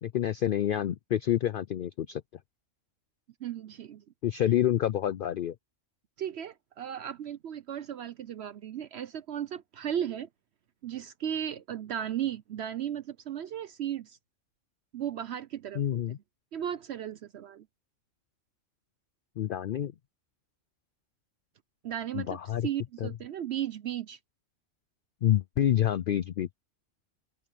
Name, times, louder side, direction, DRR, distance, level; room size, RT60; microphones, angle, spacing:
voice 1, 0.0-2.2 4.2-5.5 15.7-16.2 19.4-19.9 22.1-22.7 23.0-23.1 25.2-26.5, left 11 dB, 60° left, 0.6 m, -28 dB
voice 2, 3.4-4.0 6.2-10.3 10.8-14.2 14.9-16.0 16.5-17.7 21.8-22.4 22.6-24.2, right 10 dB, 65° right, 0.9 m, -35 dB
omnidirectional pair, 1.3 m